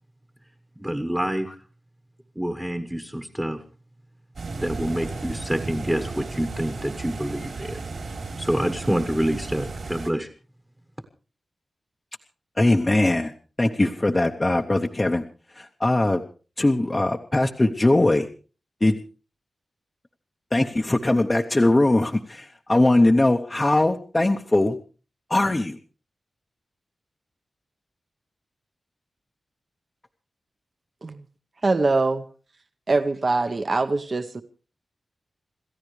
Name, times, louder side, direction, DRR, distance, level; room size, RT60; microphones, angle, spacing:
voice 1, 0.8-1.5 2.3-3.6 4.6-7.8 8.4-10.3, equal, 10° right, 7 dB, 1.2 m, -27 dB
sound 1, 4.3-10.1, right 3 dB, 60° right, 3.6 m, -34 dB
voice 2, 12.6-13.3 13.6-15.2 15.5-16.2 16.6-18.3 18.8-19.0 20.5-24.8 25.3-25.8, left 2 dB, 20° left, 3 dB, 0.8 m, -20 dB
voice 3, 31.6-32.2 32.9-34.4, right 3 dB, 35° right, 10 dB, 0.8 m, -23 dB
27.0 x 14.5 x 3.2 m, 0.36 s
wide cardioid pair, 165°, 0 cm